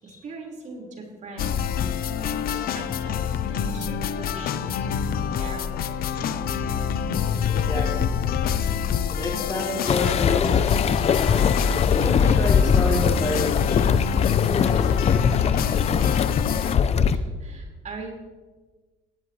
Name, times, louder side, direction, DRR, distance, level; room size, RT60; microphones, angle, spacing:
voice 1, 0.0-1.7 2.5-6.3 17.1-18.1, right 3 dB, 45° right, -1 dB, 5.3 m, -41 dB
sound 1, 1.4-16.8, left 8 dB, 65° left, 0.9 m, -26 dB
sound 2, 6.1-15.7, right 2 dB, 85° left, 3.0 m, -42 dB
voice 2, 7.5-8.1 9.1-10.8 11.9-13.6 14.5-15.4, left 1 dB, 20° left, -1 dB, 3.3 m, -29 dB
sound 3, 9.9-17.2, left 7 dB, 40° left, 0.7 m, -21 dB
19.5 x 16.5 x 3.4 m, 1.3 s
cardioid pair, 110°, 17 cm